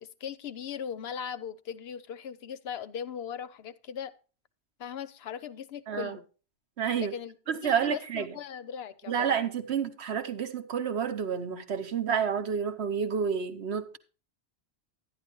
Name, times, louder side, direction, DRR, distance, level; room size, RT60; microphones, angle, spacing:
voice 1, 0.0-4.1 4.8-6.2 6.9-7.3 7.6-9.4, left 8 dB, 70° left, 0.8 m, -39 dB
voice 2, 5.9-6.2 6.8-7.1 7.5-8.4 9.1-14.0, right 7 dB, 75° right, 1.2 m, -29 dB
11.0 x 10.5 x 3.0 m
omnidirectional pair, 1.1 m